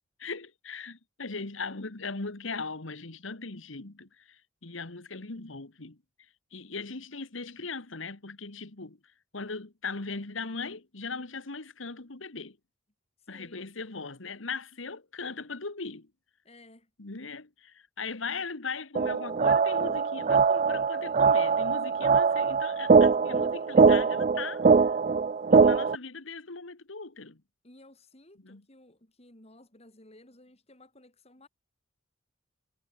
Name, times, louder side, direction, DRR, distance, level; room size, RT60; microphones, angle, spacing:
voice 1, 0.2-6.0 6.5-9.0 9.3-12.6 13.3-16.1 17.0-24.9 25.5-27.4 28.4-28.6, left 4 dB, 85° left, 1.8 m, -39 dB
voice 2, 13.2-13.7 16.4-16.9 27.6-31.5, left 1 dB, 35° left, 4.5 m, -56 dB
sound 1, 18.9-25.9, right 5 dB, 40° right, 0.4 m, -22 dB
head